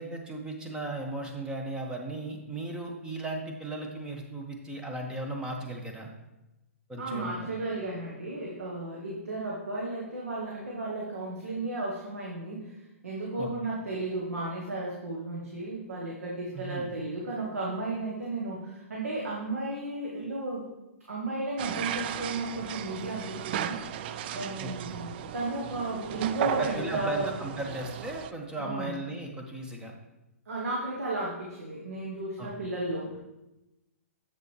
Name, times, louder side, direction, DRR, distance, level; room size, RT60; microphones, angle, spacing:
voice 1, 0.0-6.1 6.9-7.5 13.4-13.5 16.5-16.9 24.6-25.0 26.1-29.9 32.4-32.5, right 2 dB, 10° right, 1 dB, 1.1 m, -36 dB
voice 2, 7.0-12.7 13.0-20.7 21.1-23.8 24.3-27.4 28.6-28.9 30.5-33.2, right 2 dB, 75° right, -4 dB, 1.5 m, -34 dB
sound 1, 21.6-28.3, right 10 dB, 45° right, 0.3 m, -36 dB
7.3 x 6.7 x 3.3 m, 0.98 s
figure-of-eight pair, 120°, 8 cm